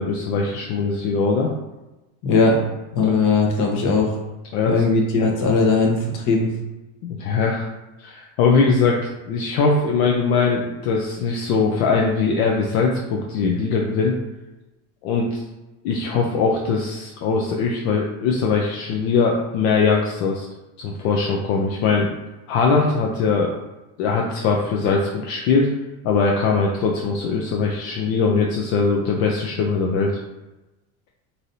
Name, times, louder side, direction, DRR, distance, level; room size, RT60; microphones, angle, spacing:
voice 1, 0.0-1.5 3.0-3.1 4.5-4.8 5.2-5.3 7.0-7.7 8.0-9.0 9.3-14.1 15.0-15.4 15.8-20.5 20.8-22.1 22.5-23.5 24.0-25.7 26.0-30.2, left 4 dB, 70° left, 0 dB, 0.6 m, -21 dB
voice 2, 2.2-2.6 2.9-4.2 4.7-6.5, left 3 dB, 45° left, 0 dB, 1.0 m, -19 dB
3.1 x 2.7 x 2.7 m, 1.0 s
supercardioid pair, 110°, 42 cm